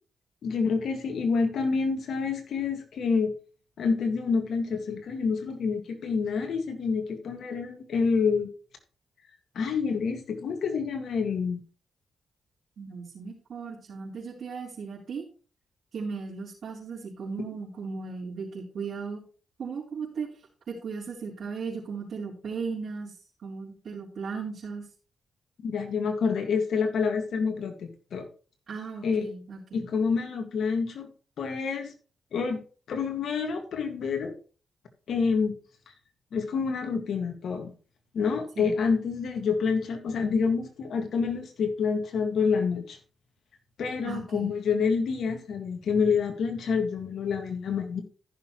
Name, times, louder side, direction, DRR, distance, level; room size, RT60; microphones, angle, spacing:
voice 1, 0.4-3.3 3.8-8.5 9.6-11.6 25.6-28.3 29.0-29.3 29.7-31.1 31.4-31.9 32.3-32.6 32.9-34.3 35.1-35.6 36.3-37.7 38.1-43.0 43.8-48.0, left 5 dB, 75° left, 6 dB, 2.0 m, -27 dB
voice 2, 12.8-15.2 15.9-19.2 19.6-20.3 20.7-23.2 23.4-24.8 28.7-29.8 38.6-38.7 44.0-44.5, right 5 dB, 65° right, -7 dB, 4.1 m, -36 dB
14.5 x 6.7 x 3.1 m, 0.39 s
cardioid pair, 60°, 0 cm